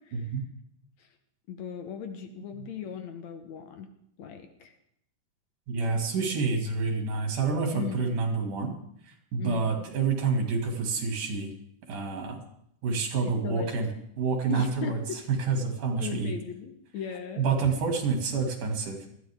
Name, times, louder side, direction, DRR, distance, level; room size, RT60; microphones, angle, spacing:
voice 1, 0.1-0.4 5.7-8.7 9.3-11.5 11.9-12.4 12.8-13.9 14.2-15.0 15.3-16.3 17.4-19.0, right 4 dB, 80° right, 2 dB, 4.1 m, -28 dB
voice 2, 1.5-3.9 4.2-4.7 7.7-8.0 9.4-9.8 13.2-13.8 14.5-15.2 16.0-17.5, left 7 dB, 65° left, 6 dB, 2.3 m, -37 dB
20.0 x 14.0 x 3.7 m, 0.70 s
omnidirectional pair, 3.5 m